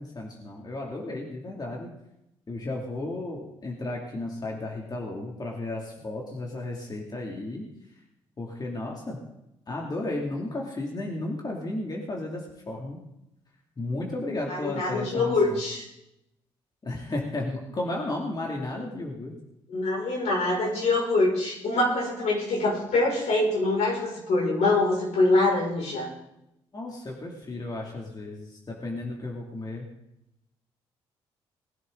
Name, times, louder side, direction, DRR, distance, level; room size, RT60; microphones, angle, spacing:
voice 1, 0.0-1.9 2.5-7.6 8.4-9.2 9.7-13.0 13.8-15.6 16.8-19.3 26.7-29.8, left 2 dB, 35° left, -1 dB, 2.7 m, -33 dB
voice 2, 14.5-15.9 19.7-26.1, left 2 dB, 75° left, -3 dB, 5.9 m, -24 dB
20.5 x 10.5 x 3.9 m, 0.86 s
supercardioid pair, 65°, 12 cm